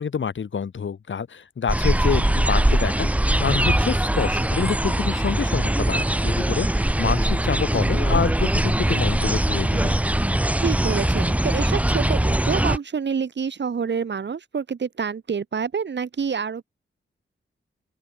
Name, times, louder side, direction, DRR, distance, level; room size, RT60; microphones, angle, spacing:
voice 1, 0.0-10.0, left 6 dB, 65° left, 1.5 m, -27 dB
sound 1, 1.7-12.8, right 1 dB, 5° right, 0.7 m, -21 dB
voice 2, 10.6-16.6, right 6 dB, 55° right, 1.3 m, -27 dB
open air
cardioid pair, 65°, 21 cm